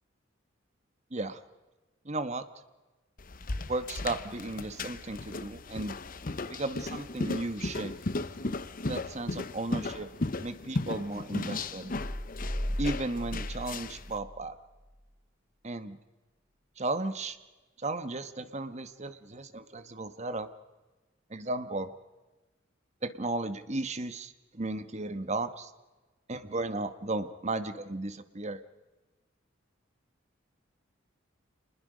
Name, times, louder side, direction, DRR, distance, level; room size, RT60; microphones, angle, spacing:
voice 1, 2.0-2.5 3.7-5.9 6.5-7.9 8.9-10.1 10.4-11.9 12.8-14.5 15.6-16.0 16.8-17.4 17.8-20.5 21.3-21.9 23.0-25.7 26.3-28.6, right 2 dB, 35° right, 11 dB, 1.2 m, -35 dB
sound 1, 3.2-14.1, left 2 dB, 45° left, 0.8 m, -36 dB
sound 2, 11.9-14.4 14.8-14.9, equal, 15° right, 6.4 m, -36 dB
27.0 x 20.5 x 5.1 m, 1.1 s
head